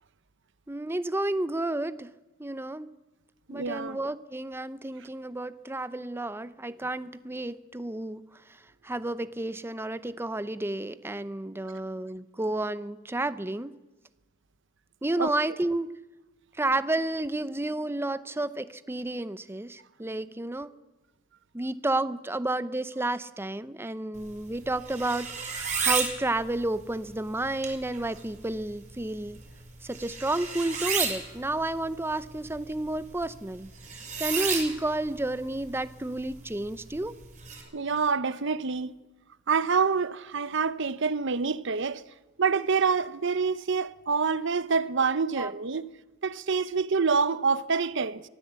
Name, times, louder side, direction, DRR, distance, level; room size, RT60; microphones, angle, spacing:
voice 1, 0.7-2.1 2.4-2.9 3.5-8.3 8.8-13.7 15.0-15.9 16.6-20.7 21.5-25.3 25.8-29.4 29.8-33.7 34.2-37.1 45.4-45.5, right 2 dB, 10° right, 0.7 m, -31 dB
voice 2, 3.5-4.0 15.2-15.3 37.7-38.9 39.5-42.0 42.4-45.9 46.2-48.2, right 5 dB, 65° right, 0.8 m, -26 dB
sound 1, 24.1-37.6, right 6 dB, 35° right, 6.0 m, -35 dB
23.5 x 15.0 x 8.2 m
head